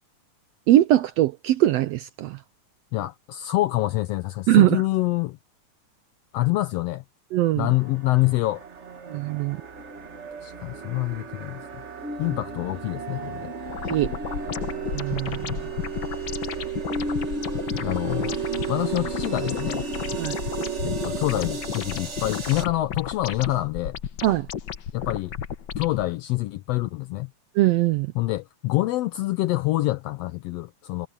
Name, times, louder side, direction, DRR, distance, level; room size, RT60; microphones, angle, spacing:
voice 1, 0.7-2.4 4.5-4.8 7.3-7.7 9.1-9.6 13.9-14.1 14.9-15.6 20.2-20.3 24.2-24.5 27.5-28.1, right 14 dB, 85° right, 1.5 m, -21 dB
voice 2, 2.9-5.4 6.3-7.0 7.5-8.6 10.4-11.8 12.2-13.5 17.8-18.4 18.7-19.8 20.8-24.0 24.9-25.3 25.8-27.3 28.1-31.1, left 17 dB, 90° left, 1.4 m, -26 dB
sound 1, 7.7-22.6, right 5 dB, 50° right, 0.8 m, -33 dB
sound 2, 13.7-26.1, left 8 dB, 70° left, 1.0 m, -33 dB
omnidirectional pair, 3.5 m